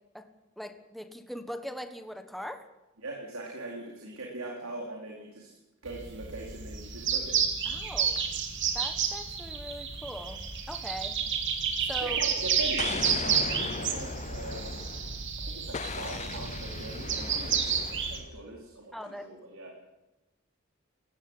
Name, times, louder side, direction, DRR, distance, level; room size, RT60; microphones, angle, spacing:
voice 1, 0.6-2.7 7.6-8.3 8.7-11.2 11.9-12.2 18.9-19.3, equal, ahead, 7 dB, 1.4 m, -41 dB
voice 2, 3.0-5.5 5.8-7.4 12.0-14.8 15.4-19.7, right 2 dB, 85° right, -1 dB, 4.4 m, -41 dB
sound 1, 5.9-18.2, right 7 dB, 60° right, 3.1 m, -31 dB
Explosion, 12.8-15.2 15.7-18.3, left 4 dB, 35° left, 0.6 m, -38 dB
18.0 x 15.0 x 9.8 m, 1.0 s
head